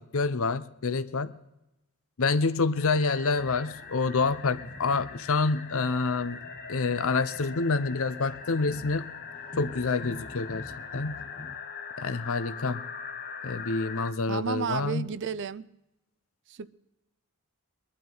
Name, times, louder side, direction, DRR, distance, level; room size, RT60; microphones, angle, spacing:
voice 1, 0.0-1.3 2.2-6.4 6.7-9.1 9.6-11.2 12.0-12.8 13.4-15.1, left 4 dB, 65° left, 0.7 m, -27 dB
sound 1, 2.7-14.1, left 6 dB, 45° left, 1.2 m, -42 dB
sound 2, 3.4-11.6, left 1 dB, 25° left, 0.6 m, -47 dB
voice 2, 14.3-15.7 16.5-16.7, right 6 dB, 55° right, 0.5 m, -32 dB
22.0 x 12.0 x 3.9 m
head